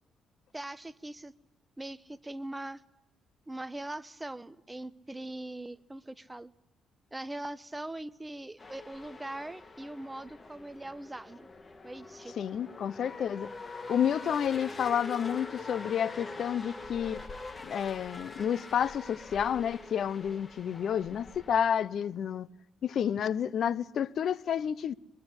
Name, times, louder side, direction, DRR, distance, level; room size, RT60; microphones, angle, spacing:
voice 1, 0.5-1.3 1.8-2.8 3.5-6.5 7.1-11.5 11.8-12.3, right 1 dB, 15° right, 1.2 m, -41 dB
sound 1, 8.6-21.6, left 3 dB, 30° left, 2.6 m, -44 dB
voice 2, 12.4-13.5 13.9-17.2 17.6-22.5 22.8-24.9, left 8 dB, 60° left, 0.9 m, -30 dB
25.0 x 22.0 x 9.9 m
cardioid pair, 90°, 0 cm